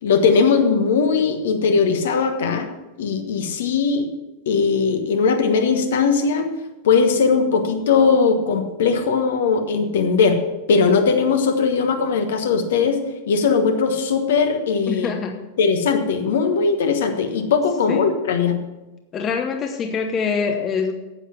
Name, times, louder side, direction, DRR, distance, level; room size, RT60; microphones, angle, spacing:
voice 1, 0.0-2.7 3.0-4.0 4.5-6.5 6.8-10.4 10.7-13.0 13.3-15.1 15.6-18.6, left 5 dB, 60° left, 6 dB, 1.3 m, -19 dB
voice 2, 14.9-15.4 17.9-18.0 19.1-20.9, left 5 dB, 30° left, 6 dB, 0.9 m, -24 dB
9.8 x 8.4 x 5.9 m, 1.1 s
figure-of-eight pair, 90°, 0 cm